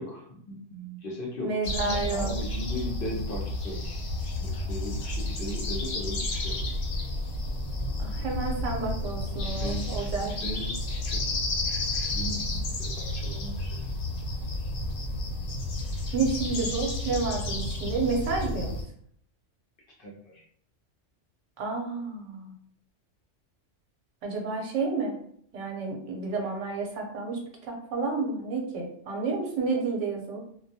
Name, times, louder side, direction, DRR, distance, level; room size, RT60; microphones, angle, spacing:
voice 1, 0.0-6.7 9.5-9.9 10.2-11.3 11.6-13.8 20.0-20.4, equal, 60° left, -2 dB, 0.7 m, -38 dB
voice 2, 1.4-2.3 8.0-10.3 16.1-18.7 21.6-22.6 24.2-25.2 25.5-30.4, right 4 dB, 80° right, 1 dB, 0.9 m, -30 dB
sound 1, 1.6-18.8, left 1 dB, 80° left, 0.9 m, -31 dB
2.2 x 2.1 x 2.6 m, 0.65 s
omnidirectional pair, 1.3 m